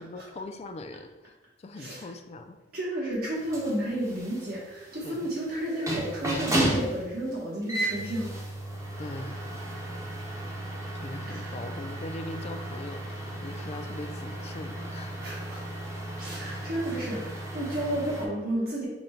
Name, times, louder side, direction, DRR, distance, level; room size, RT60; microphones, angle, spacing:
voice 1, 0.0-2.6 5.0-5.3 9.0-9.4 10.9-15.2 15.5-15.6, left 2 dB, 35° left, 7 dB, 0.3 m, -41 dB
voice 2, 1.7-2.1 2.7-8.3 11.3-11.5 15.2-15.8 16.1-18.9, right 1 dB, 55° right, -6 dB, 1.0 m, -32 dB
sound 1, 3.3-18.3, right 1 dB, 15° right, 0.7 m, -34 dB
5.1 x 2.2 x 4.2 m, 1.1 s
head